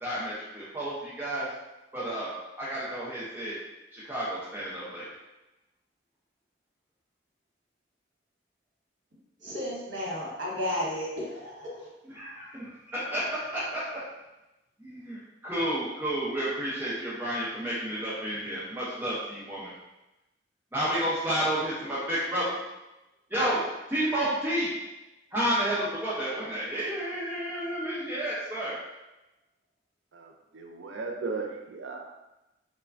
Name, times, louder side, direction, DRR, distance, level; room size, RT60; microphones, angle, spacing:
voice 1, 0.0-1.5 1.9-3.6 3.9-5.1 12.1-14.0 14.8-19.7 20.7-22.6 23.3-23.6 23.9-24.7 25.3-28.8, right 1 dB, 10° right, -8 dB, 0.5 m, -31 dB
voice 2, 9.4-11.9, left 1 dB, 70° right, -5 dB, 1.0 m, -33 dB
voice 3, 30.1-32.0, right 4 dB, 85° right, 2 dB, 0.4 m, -36 dB
3.2 x 2.1 x 2.4 m, 0.99 s
head